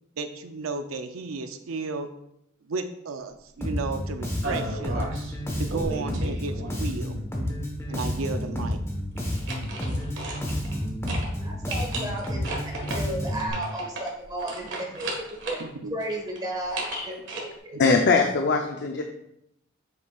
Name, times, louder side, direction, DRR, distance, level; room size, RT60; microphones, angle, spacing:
voice 1, 0.2-2.1 2.7-5.1 5.6-7.2 7.9-8.8 15.6-15.9 17.7-17.9, right 3 dB, 85° right, 7 dB, 0.6 m, -33 dB
Bass guitar, 3.6-13.5, equal, 15° left, 1.2 m, -30 dB
sound 1, 4.4-5.3 5.7-7.0 9.2-10.8 11.1-11.3 11.7-15.7 16.0-17.4, right 2 dB, 65° right, 1.6 m, -36 dB
voice 2, 11.4-15.1 15.4-15.6 15.9-17.8, right 1 dB, 20° right, 0 dB, 1.5 m, -34 dB
voice 3, 17.8-19.0, left 4 dB, 60° left, 3 dB, 0.6 m, -21 dB
7.9 x 6.7 x 2.4 m, 0.79 s
head